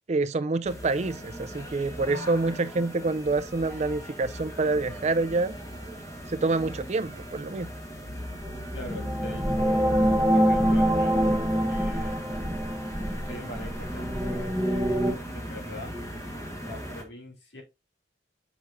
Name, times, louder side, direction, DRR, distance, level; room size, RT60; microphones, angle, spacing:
voice 1, 0.1-5.5 6.3-7.7, right 3 dB, 40° right, 0.4 m, -27 dB
sound 1, 0.7-17.0, equal, 15° left, 1.3 m, -38 dB
sound 2, 8.4-15.1, equal, 5° right, 1.0 m, -25 dB
voice 2, 8.7-10.0 10.3-11.2 11.7-12.3 13.1-14.6 15.3-16.0 16.6-17.6, left 1 dB, 65° left, 2.5 m, -42 dB
6.4 x 6.1 x 2.6 m
head